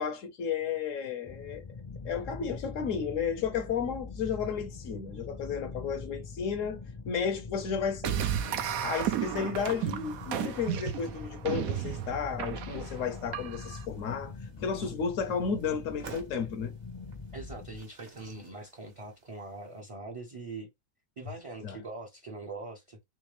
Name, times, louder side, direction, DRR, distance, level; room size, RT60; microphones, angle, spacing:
voice 1, 0.0-1.6 2.0-6.8 7.1-8.2 8.8-16.7 21.6-21.8, left 6 dB, 70° left, 1.0 m, -33 dB
sound 1, 1.2-17.8, left 4 dB, 40° left, 0.4 m, -43 dB
sound 2, 8.0-13.8, right 11 dB, 90° right, 1.1 m, -33 dB
sound 3, 8.8-19.8, right 4 dB, 60° right, 1.3 m, -55 dB
voice 2, 17.3-20.7 21.2-23.1, right 3 dB, 35° right, 0.6 m, -42 dB
3.5 x 3.2 x 3.2 m
omnidirectional pair, 1.4 m